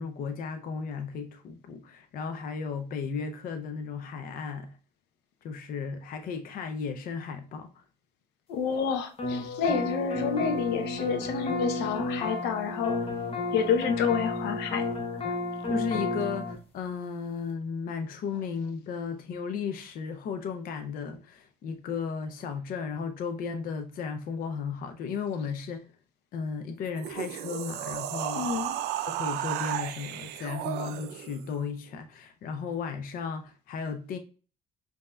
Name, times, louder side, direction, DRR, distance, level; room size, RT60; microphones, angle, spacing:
voice 1, 0.0-4.8 5.4-7.7 15.7-25.9 26.3-28.5 29.1-34.2, left 5 dB, 55° left, 0.5 m, -35 dB
voice 2, 8.5-13.0 13.5-14.9 28.4-28.8, left 6 dB, 90° left, 0.7 m, -29 dB
sound 1, 9.2-16.6, left 3 dB, 35° left, 0.8 m, -32 dB
sound 2, 26.9-31.5, right 12 dB, 85° right, 0.4 m, -34 dB
5.3 x 2.8 x 2.2 m
cardioid pair, 110°, 17 cm